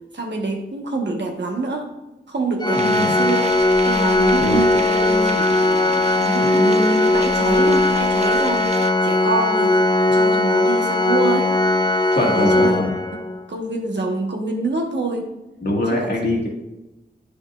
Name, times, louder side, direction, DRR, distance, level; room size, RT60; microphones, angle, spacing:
voice 1, 0.1-1.9 2.3-11.5 11.9-12.9 13.5-15.3 15.9-16.1, right 3 dB, 80° right, 2 dB, 1.0 m, -26 dB
Organ, 2.6-13.5, left 2 dB, 25° left, 0.5 m, -18 dB
voice 2, 2.7-3.1 4.4-4.6 12.1-12.9 15.6-16.5, left 1 dB, 65° left, -2 dB, 1.7 m, -22 dB
sound 1, 2.7-8.9, right 4 dB, 40° right, 0.4 m, -33 dB
9.6 x 5.3 x 2.3 m, 1.0 s
wide cardioid pair, 60°, 18 cm